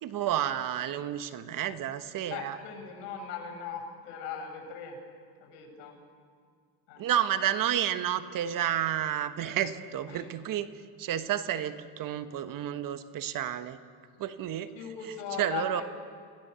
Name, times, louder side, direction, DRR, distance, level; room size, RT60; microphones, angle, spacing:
voice 1, 0.0-2.5 7.0-10.7 11.0-13.8 14.2-14.7 15.0-15.8, right 10 dB, 45° right, 11 dB, 1.2 m, -31 dB
voice 2, 2.3-5.0 5.4-6.0 6.9-7.0 10.1-10.3 14.7-15.8, left 5 dB, 75° left, 3 dB, 7.7 m, -39 dB
28.5 x 16.5 x 6.9 m, 2.1 s
supercardioid pair, 120°, 47 cm